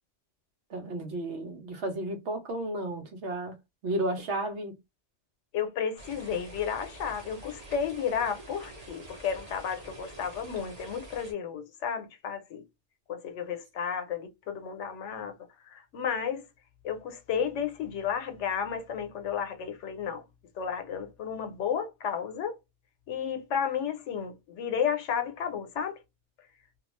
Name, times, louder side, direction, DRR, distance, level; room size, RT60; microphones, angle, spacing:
voice 1, 0.7-3.6 3.8-4.8, right 1 dB, 75° right, 1.0 m, -33 dB
voice 2, 5.5-12.6 13.1-15.3 15.7-16.5 16.8-20.2 20.6-22.5 23.1-26.0, left 7 dB, 90° left, 1.0 m, -32 dB
sound 1, 6.0-11.3, right 1 dB, 40° right, 0.8 m, -47 dB
2.3 x 2.3 x 3.0 m
omnidirectional pair, 1.2 m